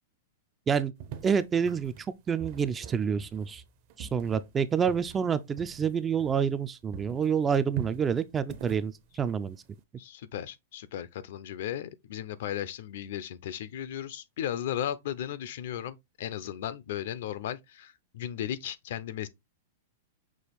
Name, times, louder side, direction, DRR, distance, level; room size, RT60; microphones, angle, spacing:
sound 1, 1.0-6.7 6.9-9.8, right 8 dB, 45° right, 0.7 m, -44 dB
voice 1, 1.2-1.9 2.3-3.6 4.0-9.6, right 7 dB, 15° right, 0.3 m, -28 dB
voice 2, 10.0-19.3, left 10 dB, 65° left, 0.5 m, -36 dB
6.0 x 2.4 x 3.4 m
supercardioid pair, 150°, 0 cm